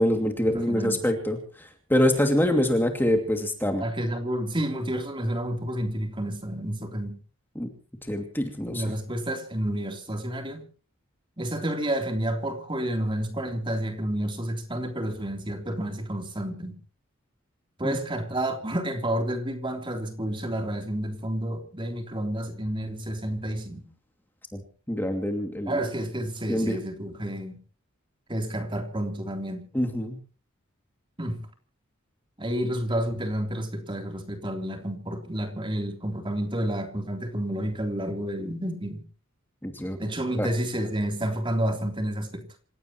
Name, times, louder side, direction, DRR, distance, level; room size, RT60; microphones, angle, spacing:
voice 1, 0.0-1.4 1.9-3.8 7.6-7.7 8.1-8.8 17.8-18.0 24.5-24.6 24.9-25.8 26.5-26.8 29.7-30.2 39.6-40.0 40.4-40.5, left 1 dB, 10° left, 2.5 m, -25 dB
voice 2, 0.5-1.1 3.8-7.2 8.7-10.7 11.4-16.8 17.8-23.9 25.7-27.6 28.3-29.6 31.2-31.4 32.4-39.0 40.0-42.5, right 1 dB, 25° right, 3.5 m, -30 dB
27.5 x 16.5 x 3.1 m
head